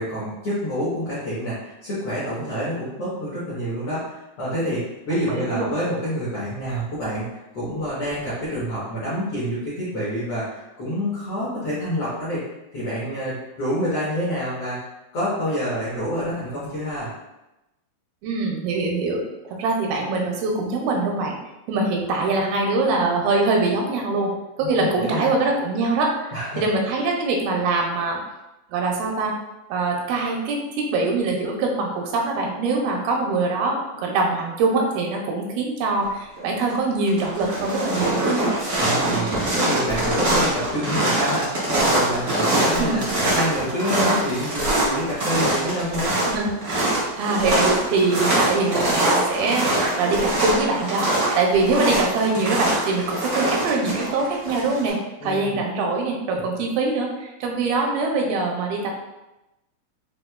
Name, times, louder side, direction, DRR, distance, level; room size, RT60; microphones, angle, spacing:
voice 1, 0.0-7.2 7.5-12.4 12.7-14.8 15.1-17.1 24.6-25.3 26.3-26.6 38.8-43.0 43.3-46.1 55.2-55.6, equal, 75° left, -10 dB, 1.4 m, -27 dB
voice 2, 5.1-5.7 18.2-21.4 21.7-24.3 24.6-26.1 26.6-28.2 28.7-29.3 29.7-38.5 39.0-39.3 42.7-43.0 46.2-55.0 55.2-58.9, right 3 dB, 85° right, 0 dB, 2.4 m, -23 dB
sound 1, 36.4-36.7 37.0-54.9, right 1 dB, 65° right, 0.8 m, -23 dB
6.2 x 2.3 x 2.2 m, 0.97 s
omnidirectional pair, 4.4 m